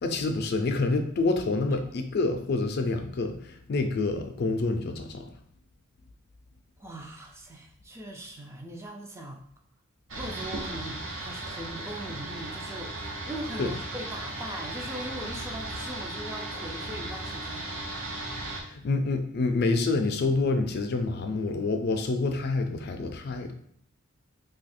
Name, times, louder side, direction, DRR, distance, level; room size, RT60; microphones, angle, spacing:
voice 1, 0.0-5.2 13.6-13.7 18.7-23.5, left 3 dB, 50° left, 6 dB, 0.4 m, -27 dB
voice 2, 6.8-9.4 10.1-17.7, right 1 dB, 15° right, 1 dB, 0.3 m, -40 dB
sound 1, 10.1-18.6, right 2 dB, 70° right, 0.7 m, -36 dB
2.7 x 2.4 x 4.2 m, 0.63 s
head